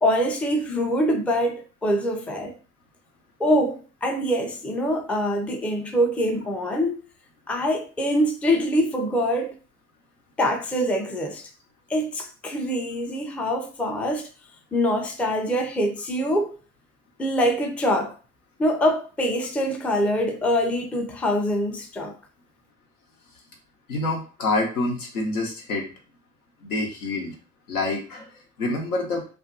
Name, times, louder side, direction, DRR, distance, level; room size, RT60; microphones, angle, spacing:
voice 1, 0.0-2.6 3.4-7.0 7.5-9.6 10.4-11.5 11.9-14.3 14.7-16.6 17.2-18.1 18.6-22.1, equal, 5° left, 0.3 m, -24 dB
voice 2, 23.9-25.9 26.6-27.3 27.7-29.3, left 2 dB, 85° left, 0.8 m, -27 dB
2.5 x 2.2 x 2.5 m
hypercardioid pair, 60°, 43 cm